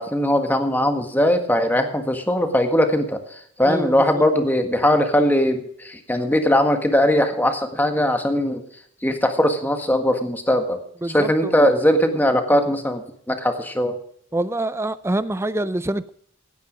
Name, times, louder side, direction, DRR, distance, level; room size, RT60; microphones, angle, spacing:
voice 1, 0.0-8.6 9.0-13.9, left 1 dB, 10° left, 6 dB, 1.6 m, -20 dB
voice 2, 14.3-16.1, right 1 dB, 10° right, 15 dB, 0.4 m, -25 dB
17.0 x 9.4 x 5.1 m, 0.64 s
head